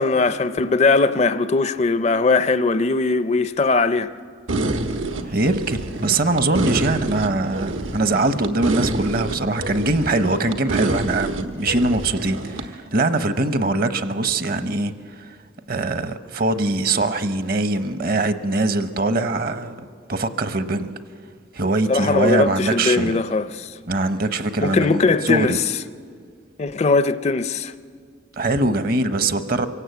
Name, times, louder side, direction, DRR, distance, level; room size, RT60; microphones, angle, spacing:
voice 1, 0.0-4.1 21.9-23.8 24.6-25.6 26.6-27.7, left 3 dB, 35° left, 0.5 m, -20 dB
sound 1, 4.5-12.7, right 2 dB, 85° right, 1.4 m, -27 dB
voice 2, 5.2-15.4 15.7-19.7 20.1-20.9 21.5-23.2 23.9-25.6 28.4-29.7, right 2 dB, 50° right, 0.9 m, -22 dB
24.0 x 17.0 x 8.2 m
head